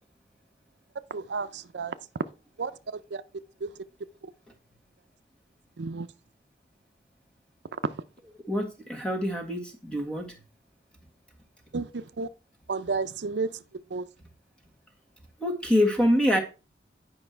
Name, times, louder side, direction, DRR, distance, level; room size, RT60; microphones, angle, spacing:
voice 1, 1.1-1.9 2.6-3.2 3.6-3.7 4.2-4.3 5.8-6.1 7.8-7.9 11.7-12.3 12.7-13.6 13.9-14.0, right 4 dB, 80° right, 0.5 m, -32 dB
voice 2, 8.5-10.3 15.4-16.4, left 1 dB, 5° left, 1.6 m, -25 dB
10.0 x 5.3 x 4.5 m
head